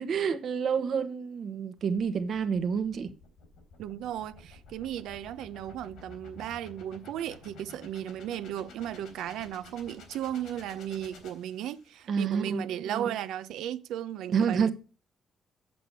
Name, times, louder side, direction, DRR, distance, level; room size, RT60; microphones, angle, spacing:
voice 1, 0.0-3.1 12.1-13.1 14.3-14.7, right 6 dB, 60° right, 1.2 m, -29 dB
sound 1, 1.8-12.1, left 4 dB, 85° left, 3.6 m, -52 dB
voice 2, 3.8-14.7, right 11 dB, 85° right, 0.7 m, -35 dB
7.8 x 6.8 x 6.8 m
cardioid pair, 90°, 0 cm